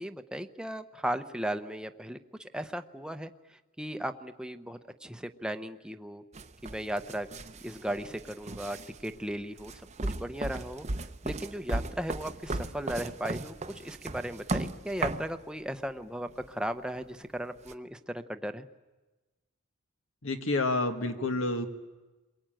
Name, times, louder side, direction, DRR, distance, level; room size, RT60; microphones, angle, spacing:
voice 1, 0.0-3.3 3.8-6.2 6.6-7.3 7.6-10.9 11.2-18.7, equal, 5° right, 8 dB, 0.8 m, -36 dB
sound 1, 6.3-15.3 16.3-16.5 17.7-17.8, right 2 dB, 30° right, 0.8 m, -36 dB
voice 2, 20.2-21.7, left 2 dB, 70° left, 7 dB, 1.9 m, -29 dB
29.5 x 22.5 x 9.1 m, 1.2 s
head